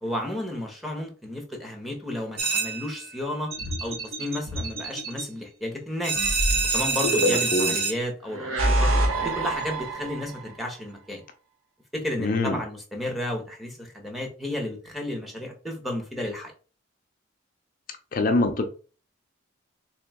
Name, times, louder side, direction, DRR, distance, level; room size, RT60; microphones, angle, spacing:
voice 1, 0.0-3.5 3.8-6.2 6.7-8.9 9.2-11.2 11.9-16.5, left 1 dB, ahead, 0.7 m, -32 dB
sound 1, 2.4-3.2 6.0-7.9, right 4 dB, 50° right, 0.8 m, -26 dB
sound 2, 3.5-5.2 6.2-7.7 8.3-10.5, right 1 dB, 80° right, 0.9 m, -27 dB
voice 2, 7.2-7.8 12.2-12.6 18.1-18.6, left 2 dB, 40° left, 0.4 m, -24 dB
3.3 x 3.0 x 3.4 m
head